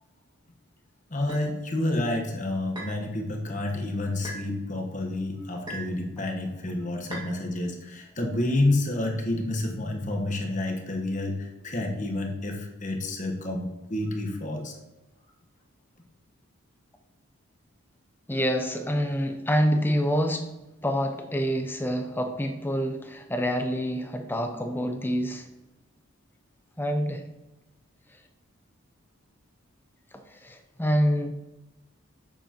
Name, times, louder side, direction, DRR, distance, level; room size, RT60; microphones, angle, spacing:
voice 1, 1.1-14.8, left 2 dB, 35° left, 2 dB, 1.2 m, -29 dB
sound 1, 1.3-1.5 2.8-3.0 4.2-4.5 5.7-6.0 7.1-7.3, right 1 dB, 20° right, 1.8 m, -38 dB
voice 2, 18.3-20.5 20.8-25.5 26.8-27.2 30.1-31.3, equal, 10° left, 5 dB, 0.6 m, -27 dB
7.9 x 7.2 x 2.9 m, 0.98 s
head